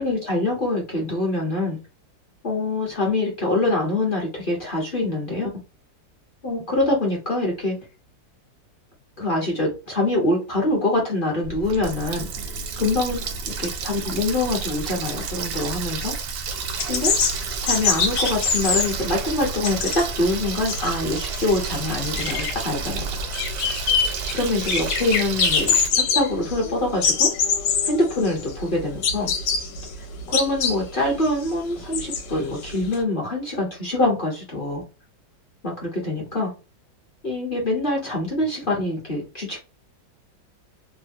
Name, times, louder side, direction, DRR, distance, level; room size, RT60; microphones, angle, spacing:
voice 1, 0.0-1.8 2.4-5.5 6.4-7.8 9.2-12.5 12.8-13.2 13.6-16.1 16.9-17.2 17.6-23.1 24.3-25.7 26.1-27.3 27.8-29.3 30.3-34.8 35.6-36.5 37.2-39.6, left 2 dB, 40° left, -2 dB, 0.8 m, -24 dB
Water tap faucet, 11.4-25.9, right 5 dB, 85° right, 1.3 m, -31 dB
sound 1, 16.6-32.9, left 6 dB, 75° left, 1.3 m, -25 dB
3.2 x 2.1 x 2.6 m, 0.30 s
omnidirectional pair, 2.0 m